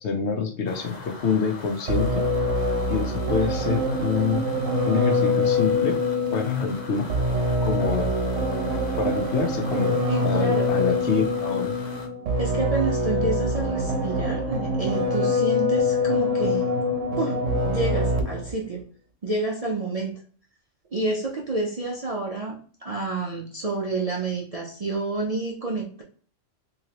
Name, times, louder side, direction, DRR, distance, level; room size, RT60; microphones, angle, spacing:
voice 1, 0.0-2.3 2.9-4.5 4.8-6.0 6.3-7.1 7.6-8.1 9.0-11.7, left 5 dB, 70° left, 5 dB, 0.9 m, -26 dB
sound 1, 0.7-12.1, left 3 dB, 40° left, 0.8 m, -41 dB
sound 2, 1.9-18.5, left 2 dB, 85° right, 1.1 m, -25 dB
voice 2, 10.1-10.7 12.4-16.6 17.2-18.8 19.2-20.2 20.9-26.0, right 3 dB, 50° right, -2 dB, 0.4 m, -29 dB
3.7 x 2.9 x 2.8 m, 0.44 s
omnidirectional pair, 1.3 m